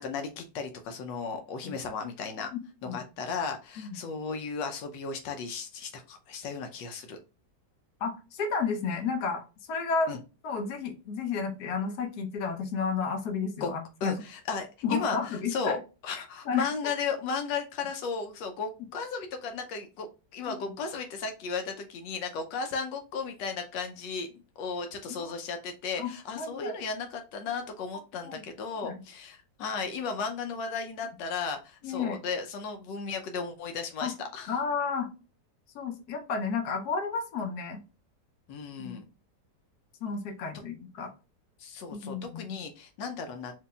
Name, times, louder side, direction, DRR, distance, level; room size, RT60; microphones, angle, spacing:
voice 1, 0.0-2.5 2.8-7.2 10.1-10.2 13.6-13.7 14.0-15.8 16.0-34.6 38.5-39.1 41.6-43.6, left 5 dB, 90° left, 5 dB, 1.3 m, -35 dB
voice 2, 8.0-10.2 10.4-14.1 14.8-15.8 16.1-16.7 20.5-20.6 26.0-26.1 26.4-26.7 28.2-28.4 28.8-29.0 31.8-32.2 34.0-34.1 34.5-35.1 35.7-37.8 38.8-39.0 40.0-41.1 41.9-42.5, left 5 dB, 65° left, 4 dB, 1.3 m, -32 dB
4.5 x 2.9 x 2.2 m, 0.31 s
omnidirectional pair, 1.9 m